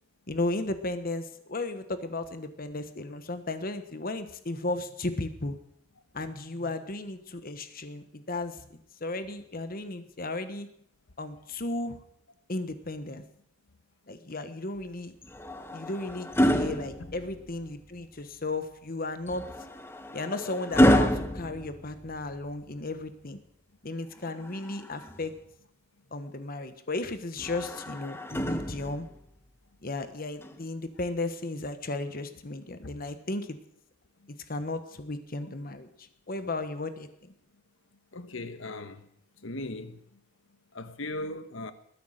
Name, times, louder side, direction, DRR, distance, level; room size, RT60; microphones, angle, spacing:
voice 1, 0.3-5.6 6.1-10.7 11.2-12.0 12.5-13.2 14.1-15.1 15.7-19.5 20.1-23.4 23.8-25.3 26.1-29.1 29.8-33.5 34.5-35.9 36.3-37.3, left 2 dB, 45° left, 1.2 m, -35 dB
sound 1, 15.2-17.7 19.3-22.5 24.2-25.4 27.4-29.2 30.4-30.6, equal, 10° left, 1.0 m, -28 dB
voice 2, 38.1-39.1 39.4-40.0 40.7-41.7, left 2 dB, 75° left, 1.3 m, -38 dB
20.5 x 9.9 x 6.6 m
head